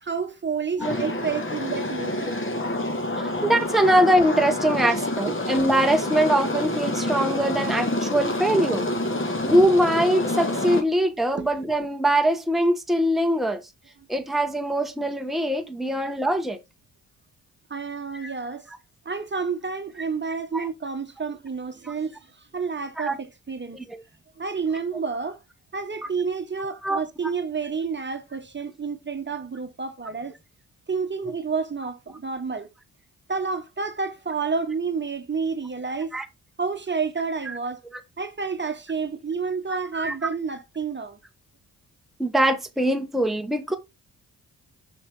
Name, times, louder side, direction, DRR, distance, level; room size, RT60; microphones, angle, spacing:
voice 1, 0.0-2.4 11.3-11.4 17.7-18.7 19.0-22.2 22.5-23.8 24.4-25.4 25.7-30.3 30.9-32.7 33.3-36.2 36.6-37.8 38.2-41.2, right 5 dB, 30° right, 1.2 m, -29 dB
sound 1, 0.8-10.8, left 1 dB, 30° left, 2.3 m, -27 dB
voice 2, 3.4-8.8 9.4-13.6 14.1-16.6 18.2-18.3 20.5-20.7 21.8-21.9 23.0-23.2 23.7-24.0 26.8-27.0 36.1-36.2 37.5-37.6 39.7-40.1 42.2-43.8, right 1 dB, ahead, 1.1 m, -22 dB
5.8 x 5.7 x 3.8 m
hypercardioid pair, 45°, 39 cm